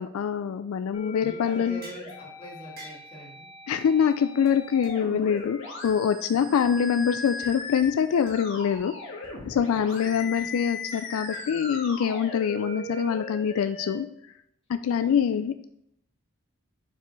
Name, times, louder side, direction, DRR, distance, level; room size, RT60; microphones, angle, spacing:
voice 1, 0.0-1.8 3.7-14.1 14.7-15.7, left 7 dB, 80° left, 10 dB, 0.3 m, -25 dB
sound 1, 0.9-14.0, left 2 dB, 65° left, 1.7 m, -39 dB
voice 2, 1.2-3.5 6.3-6.6 9.4-10.6 14.9-15.4, equal, 25° left, -4 dB, 1.9 m, -45 dB
sound 2, 1.8-2.1 2.8-3.1 3.8-3.9 4.1-4.2 4.5-4.6 4.8-4.9 5.4-5.5 5.8-5.9 7.3-7.5 7.8-7.9 8.3-8.4 8.7-8.8 9.2-9.4 9.7-9.9 10.3-10.5 10.9-11.8, right 2 dB, 45° right, 1.5 m, -47 dB
6.6 x 5.0 x 3.1 m, 0.76 s
head